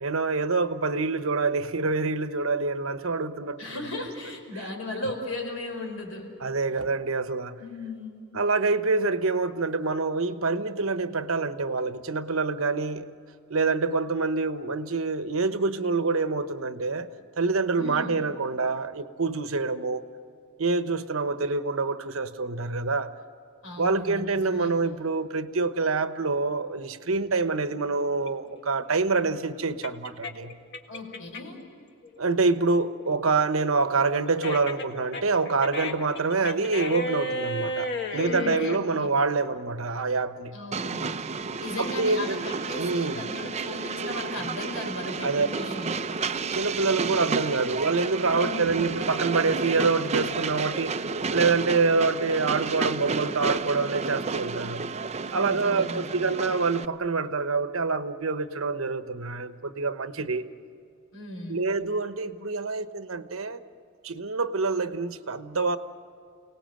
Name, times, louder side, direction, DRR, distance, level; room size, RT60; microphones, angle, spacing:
voice 1, 0.0-3.6 6.4-7.6 8.3-13.1 13.5-17.1 17.4-20.0 20.6-23.1 23.8-30.6 32.2-40.6 41.8-43.2 45.2-45.5 46.5-54.9 55.3-60.5 61.5-63.6 64.0-65.8, right 4 dB, 80° right, 1.1 m, -26 dB
voice 2, 3.6-6.3 7.6-8.3 17.8-18.2 23.6-24.7 30.9-31.6 38.1-39.1 40.5-41.2 41.6-46.0 48.3-48.8 55.3-56.4 61.1-61.6, left 2 dB, 75° left, 5.0 m, -36 dB
sound 1, 28.2-31.6 32.0-38.8, left 1 dB, 55° left, 1.6 m, -34 dB
Train, 40.7-56.9, right 4 dB, 30° right, 0.6 m, -31 dB
29.0 x 19.0 x 7.8 m
head